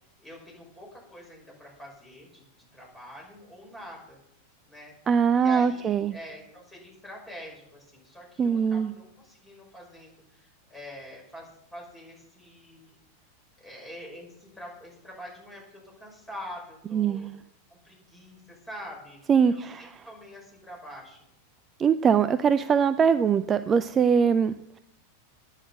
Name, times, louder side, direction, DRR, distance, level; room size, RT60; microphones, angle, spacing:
voice 1, 0.2-2.5 2.7-4.2 4.6-4.9 5.4-13.0 13.6-17.3 17.7-21.2, equal, 10° left, -2 dB, 5.8 m, -45 dB
voice 2, 5.1-6.1 8.4-8.9 16.9-17.4 19.3-19.9 21.8-24.8, right 7 dB, 25° right, 12 dB, 0.4 m, -22 dB
9.9 x 8.9 x 7.3 m, 0.79 s
figure-of-eight pair, 90°, 0 cm